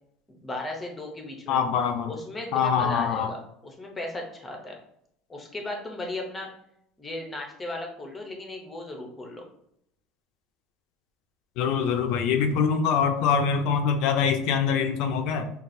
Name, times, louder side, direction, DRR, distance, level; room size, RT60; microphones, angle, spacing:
voice 1, 0.3-1.6 2.1-4.8 5.3-6.5 7.0-9.4, left 2 dB, 10° left, 1 dB, 0.6 m, -36 dB
voice 2, 1.5-2.1 2.5-3.3 11.6-15.5, left 6 dB, 55° left, 7 dB, 0.4 m, -24 dB
5.8 x 2.3 x 2.6 m, 0.74 s
cardioid pair, 175°, 0 cm